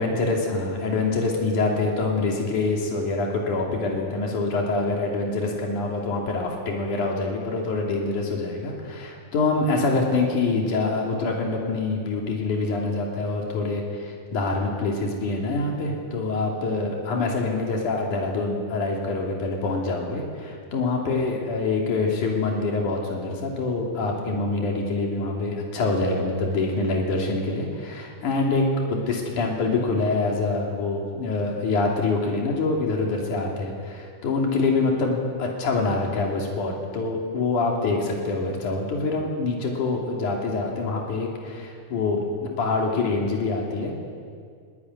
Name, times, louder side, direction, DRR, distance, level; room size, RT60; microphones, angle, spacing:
voice 1, 0.0-28.6 28.9-43.9, left 3 dB, 70° left, 0 dB, 4.3 m, -25 dB
22.5 x 18.0 x 9.8 m, 2.2 s
omnidirectional pair, 3.6 m